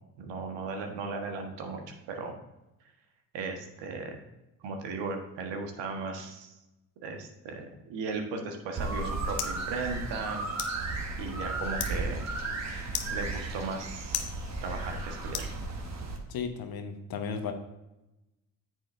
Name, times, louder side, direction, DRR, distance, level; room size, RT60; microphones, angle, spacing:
voice 1, 0.2-1.8 2.1-2.3 3.3-4.2 4.6-6.5 7.0-10.5 11.2-12.3 13.1-14.2 14.6-15.5, right 4 dB, 60° right, 4 dB, 1.5 m, -36 dB
sound 1, 8.6-16.1, left 10 dB, 85° left, 0.8 m, -41 dB
sound 2, 8.8-16.2, right 3 dB, 35° right, 1.6 m, -35 dB
voice 2, 16.3-17.5, left 6 dB, 45° left, 6 dB, 1.1 m, -34 dB
9.1 x 7.5 x 2.6 m, 0.97 s
hypercardioid pair, 55°, 49 cm